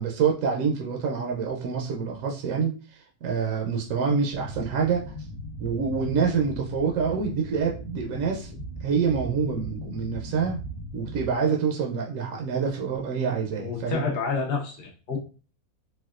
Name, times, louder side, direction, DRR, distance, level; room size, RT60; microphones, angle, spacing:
voice 1, 0.0-5.0 5.6-8.5 8.8-10.6 10.9-14.1, right 6 dB, 70° right, 0 dB, 0.9 m, -26 dB
sound 1, 4.3-11.4, equal, 80° left, 1.1 m, -38 dB
voice 2, 13.6-15.2, left 5 dB, 60° left, 0 dB, 0.6 m, -29 dB
4.1 x 2.3 x 2.4 m, 0.36 s
omnidirectional pair, 1.5 m